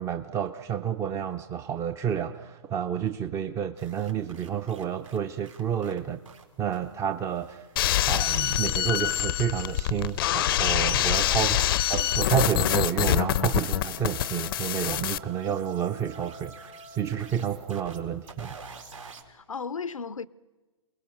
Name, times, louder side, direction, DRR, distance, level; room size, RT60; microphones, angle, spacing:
voice 1, 0.0-6.2 6.6-7.7 8.1-11.6 11.9-18.6, right 9 dB, 15° right, 0.6 m, -30 dB
sound 1, 3.8-6.4 6.7-6.9 7.3-19.2, right 4 dB, 80° right, 4.3 m, -51 dB
sound 2, 7.8-15.2, left 13 dB, 45° left, 0.6 m, -25 dB
voice 2, 11.4-11.7 19.3-20.3, left 5 dB, 85° left, 0.7 m, -36 dB
Wind instrument woodwind instrument, 12.3-17.3, right 2 dB, 50° right, 5.0 m, -49 dB
29.0 x 20.5 x 6.5 m
figure-of-eight pair, 125°, 17 cm